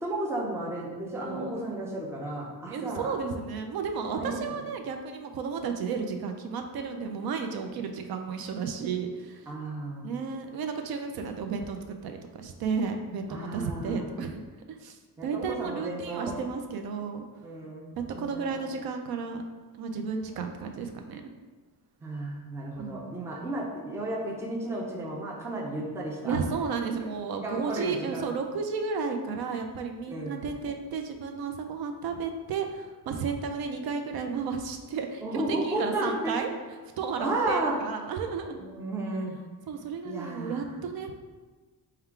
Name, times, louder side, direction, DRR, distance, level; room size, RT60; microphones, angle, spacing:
voice 1, 0.0-3.1 4.1-4.4 9.5-10.1 13.3-14.1 15.2-16.4 17.4-18.6 22.0-26.4 27.4-28.3 30.1-30.4 35.2-36.4 37.2-37.7 38.6-39.4 40.0-40.7, right 2 dB, 10° right, -2 dB, 0.4 m, -33 dB
voice 2, 1.2-1.8 2.7-9.5 10.0-14.4 14.7-17.2 18.0-19.4 19.8-21.3 22.8-23.3 26.2-36.5 37.0-38.6 39.7-41.2, right 5 dB, 80° right, 5 dB, 0.5 m, -33 dB
3.6 x 2.3 x 4.4 m, 1.3 s
wide cardioid pair, 170°, 36 cm